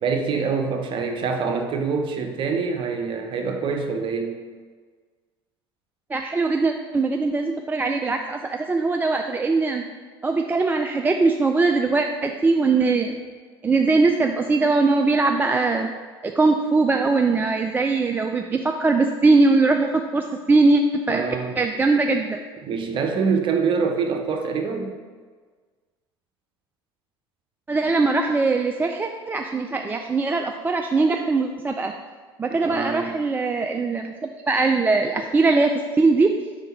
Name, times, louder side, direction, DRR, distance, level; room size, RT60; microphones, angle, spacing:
voice 1, 0.0-4.4 21.1-21.6 22.6-24.9 32.6-33.2, right 5 dB, 40° right, 4 dB, 0.8 m, -25 dB
voice 2, 6.1-9.8 10.2-13.1 13.6-15.9 16.2-21.2 21.6-22.4 27.7-31.9 32.4-34.1 34.5-36.3, right 3 dB, 15° right, 4 dB, 0.3 m, -21 dB
5.2 x 3.7 x 5.5 m, 1.5 s
figure-of-eight pair, 70°, 13 cm